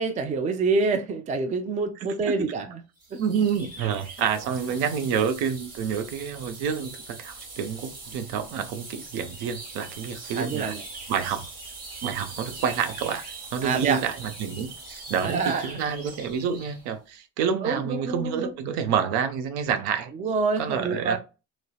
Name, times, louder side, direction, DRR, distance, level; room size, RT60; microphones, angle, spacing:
voice 1, 0.0-2.8 3.1-3.2 10.3-10.8 13.6-14.0 15.2-15.6 17.6-18.5 20.2-21.2, right 4 dB, 20° right, 0.4 m, -26 dB
sound 1, 3.0-16.9, right 3 dB, 35° right, 1.4 m, -42 dB
voice 2, 3.2-10.8 11.1-11.5 12.0-13.2 13.5-20.1 20.6-21.2, right 7 dB, 65° right, 0.6 m, -28 dB
2.7 x 2.1 x 2.2 m
supercardioid pair, 85°, 41 cm